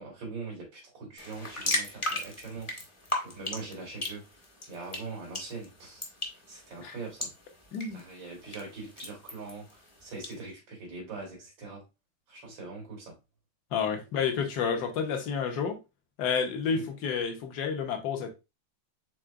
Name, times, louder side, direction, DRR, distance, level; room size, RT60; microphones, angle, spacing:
voice 1, 0.0-2.9 3.2-7.3 7.9-11.8 12.3-13.2 16.7-16.9, right 4 dB, 90° right, 2.3 m, -42 dB
sound 1, 1.2-10.3, left 1 dB, 25° left, 0.7 m, -37 dB
voice 2, 13.7-15.8 16.2-18.3, left 6 dB, 65° left, 1.4 m, -30 dB
4.8 x 3.7 x 2.3 m
omnidirectional pair, 2.0 m